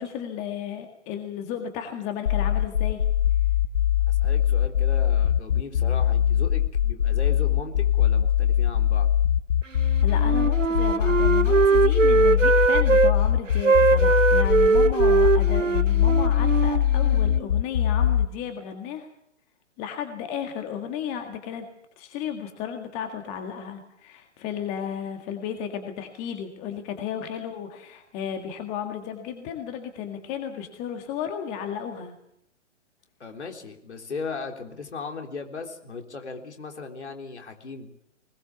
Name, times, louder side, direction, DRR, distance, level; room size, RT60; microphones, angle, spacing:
voice 1, 0.0-3.0 10.0-19.1 19.8-21.7 22.0-32.1, left 8 dB, 20° left, 5 dB, 1.8 m, -34 dB
sound 1, 2.3-18.3, left 10 dB, 40° left, 0.8 m, -22 dB
voice 2, 4.1-9.1 33.2-37.9, left 4 dB, 60° left, 3 dB, 3.8 m, -37 dB
Wind instrument woodwind instrument, 10.2-13.1 13.6-17.5, right 4 dB, 80° right, 1.0 m, -21 dB
22.0 x 20.5 x 7.1 m, 0.76 s
figure-of-eight pair, 130°, 38 cm